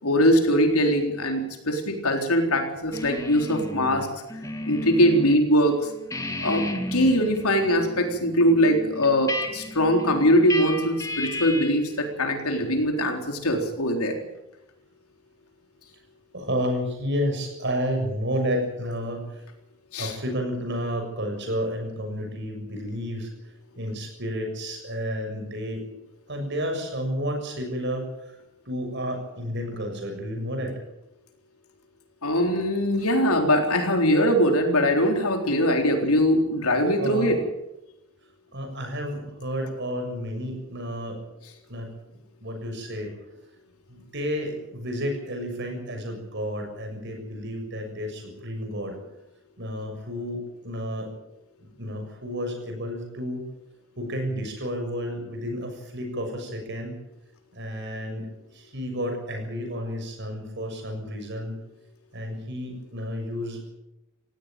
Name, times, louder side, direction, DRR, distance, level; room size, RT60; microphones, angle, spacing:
voice 1, 0.0-4.1 4.7-5.9 6.4-14.2 19.9-20.1 32.2-37.4, equal, 80° left, 4 dB, 4.0 m, -22 dB
sound 1, 2.9-5.4 5.7-11.9, left 1 dB, 15° left, 2.1 m, -34 dB
voice 2, 16.3-19.4 20.0-23.3 23.8-25.8 26.3-28.4 28.7-30.7 37.0-37.3 38.5-41.2 41.7-41.9 42.4-43.1 43.9-49.0 49.6-51.1 51.6-53.4 54.0-57.0 57.5-61.6 62.1-63.7, equal, 55° right, 4 dB, 6.9 m, -31 dB
18.5 x 16.5 x 9.1 m, 0.91 s
head